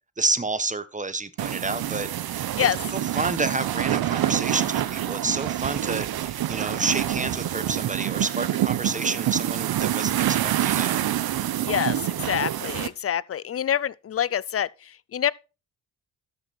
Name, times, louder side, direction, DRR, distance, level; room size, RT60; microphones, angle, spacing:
voice 1, 0.2-11.0, right 3 dB, 20° right, 1.4 m, -29 dB
sound 1, 1.4-12.9, right 12 dB, 60° right, 0.9 m, -26 dB
voice 2, 11.6-14.7 15.1-15.3, left 9 dB, 35° left, 0.5 m, -26 dB
13.0 x 6.0 x 4.4 m
supercardioid pair, 50°, 41 cm